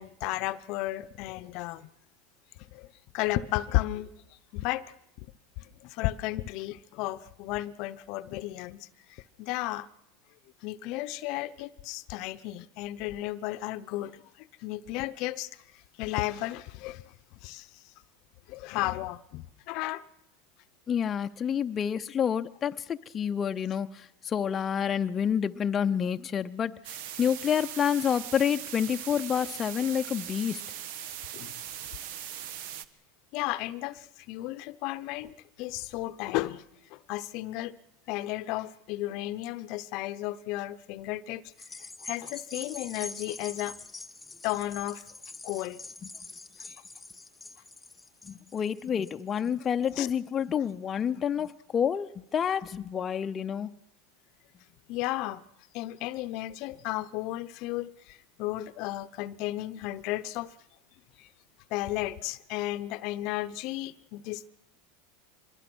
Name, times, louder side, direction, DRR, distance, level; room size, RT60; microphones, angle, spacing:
voice 1, 0.0-1.9 2.7-2.9 3.1-4.1 4.5-4.9 5.6-9.9 10.6-15.5 16.0-17.0 17.4-17.7 18.5-20.0 31.3-31.5 33.3-36.7 36.9-37.8 38.1-43.8 44.4-45.0 45.4-45.8 46.6-46.8 50.0-50.1 54.9-55.4 55.7-60.5 61.2-61.3 61.7-64.5, left 17 dB, 60° left, 0.8 m, -34 dB
voice 2, 20.9-30.6 46.0-46.1 48.2-53.7, left 8 dB, 30° left, 0.7 m, -29 dB
sound 1, 26.8-32.8, right 10 dB, 70° right, 1.3 m, -40 dB
sound 2, 41.5-50.2 50.7-50.8, left 3 dB, 10° left, 1.1 m, -45 dB
25.0 x 21.5 x 6.2 m
supercardioid pair, 110°, 0 cm